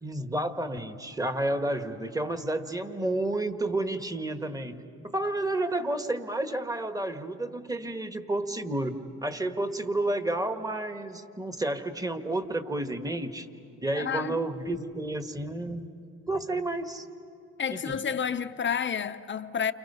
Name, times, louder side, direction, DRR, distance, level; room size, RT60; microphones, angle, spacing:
voice 1, 0.0-13.5 13.8-15.9 16.3-17.0 17.7-18.0, right 1 dB, 10° right, 1.5 m, -31 dB
voice 2, 14.0-14.3 17.6-19.7, left 7 dB, 40° left, 0.7 m, -30 dB
29.5 x 29.0 x 5.6 m
cardioid pair, 90°, 30 cm